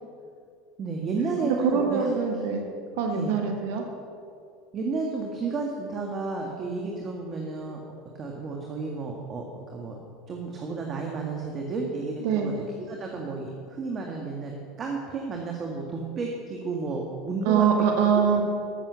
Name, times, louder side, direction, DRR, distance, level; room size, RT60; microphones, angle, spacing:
voice 1, 0.8-2.1 3.1-3.3 4.7-7.8 8.1-9.9 10.3-17.7 18.1-18.2, right 4 dB, 40° right, 0 dB, 1.7 m, -32 dB
voice 2, 1.4-2.6 3.0-3.8 12.2-12.6 17.4-18.4, right 7 dB, 70° right, 3 dB, 1.5 m, -23 dB
14.0 x 6.8 x 6.9 m, 2.4 s
hypercardioid pair, 90°, 0 cm